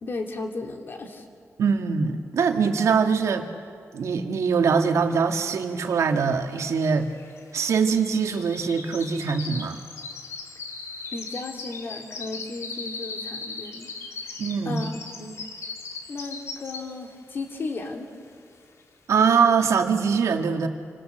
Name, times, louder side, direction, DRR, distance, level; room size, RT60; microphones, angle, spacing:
voice 1, 0.0-1.2 11.1-13.9 14.6-14.9 15.2-15.4 16.1-18.1, left 3 dB, 45° left, 3 dB, 2.7 m, -35 dB
voice 2, 1.6-3.5 3.9-7.1 7.5-9.8 14.4-14.8 19.1-20.7, right 5 dB, 80° right, 5 dB, 1.8 m, -23 dB
sound 1, 5.4-5.5 5.7-17.1 17.5-17.8 18.3-18.4, left 4 dB, 70° left, 2.5 m, -39 dB
27.5 x 25.5 x 7.8 m, 2.2 s
wide cardioid pair, 155°, 5 cm